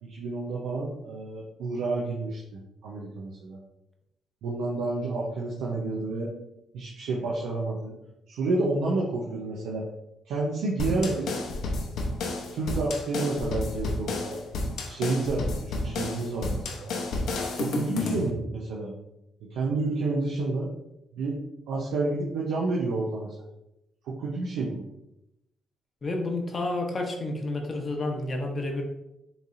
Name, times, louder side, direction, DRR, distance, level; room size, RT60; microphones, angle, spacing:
voice 1, 0.0-2.4 2.8-3.6 4.4-6.3 6.7-7.9 8.3-9.8 10.3-11.3 12.5-14.4 14.8-16.9 17.6-18.9 19.5-20.7 21.2-21.4 21.7-23.4 24.0-24.8, right 3 dB, 90° right, -4 dB, 0.7 m, -29 dB
sound 1, 10.8-18.3, left 2 dB, 75° left, 0.7 m, -31 dB
voice 2, 26.0-28.8, left 2 dB, 40° left, 2 dB, 0.8 m, -30 dB
5.1 x 3.3 x 2.5 m, 0.88 s
cardioid pair, 90°, 0 cm